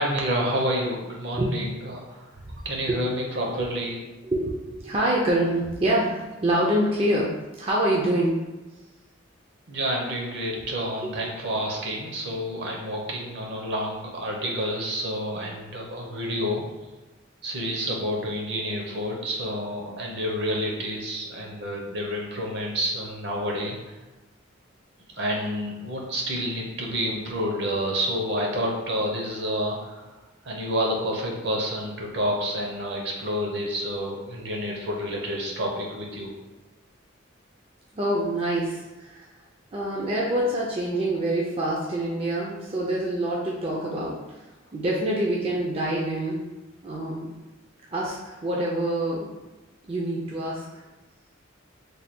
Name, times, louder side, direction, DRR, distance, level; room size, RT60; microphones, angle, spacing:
voice 1, 0.0-4.1 9.7-16.6 17.4-23.8 25.2-30.0 30.4-36.3, equal, 60° right, 0 dB, 0.8 m, -29 dB
voice 2, 4.2-8.4 11.0-11.1 37.9-39.3 39.7-44.2 44.7-46.4 46.8-47.3 47.9-49.3 49.8-50.8, right 1 dB, 30° right, -4 dB, 0.4 m, -26 dB
3.3 x 2.2 x 4.3 m, 1.1 s
head